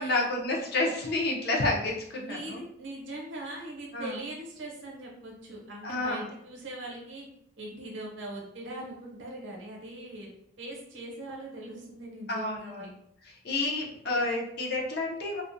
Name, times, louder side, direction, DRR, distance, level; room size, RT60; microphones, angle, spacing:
voice 1, 0.0-2.6 3.9-4.2 5.8-6.3 12.3-12.9 13.2-15.4, left 2 dB, 50° left, -2 dB, 0.5 m, -30 dB
voice 2, 2.2-7.3 7.6-10.3 10.6-12.9, right 1 dB, 70° right, -2 dB, 0.7 m, -41 dB
2.3 x 2.1 x 2.5 m, 0.75 s
head